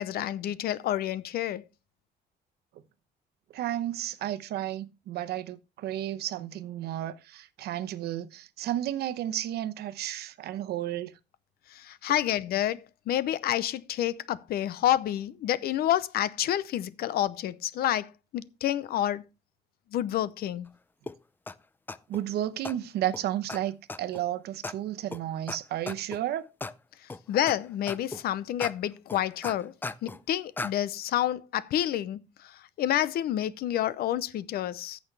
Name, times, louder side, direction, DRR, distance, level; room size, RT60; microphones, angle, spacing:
voice 1, 0.0-1.6 11.7-19.2 19.9-20.7 27.0-29.7 30.0-35.0, left 12 dB, 70° left, 0.7 m, -29 dB
voice 2, 3.5-11.1 22.1-26.5, right 12 dB, 75° right, 0.9 m, -32 dB
sound 1, 21.1-21.2 21.5-21.6 21.9-22.2 22.6-22.7 23.1-23.2 23.5-23.6 23.9-24.2 24.6-24.7 25.1-25.2 25.5-25.6 25.9-26.2 26.6-26.7 27.1-27.5 27.9-28.2 28.6-28.7 29.1-30.2 30.6-30.7, left 3 dB, 10° left, 0.4 m, -36 dB
14.5 x 6.3 x 3.3 m
cardioid pair, 150°, 17 cm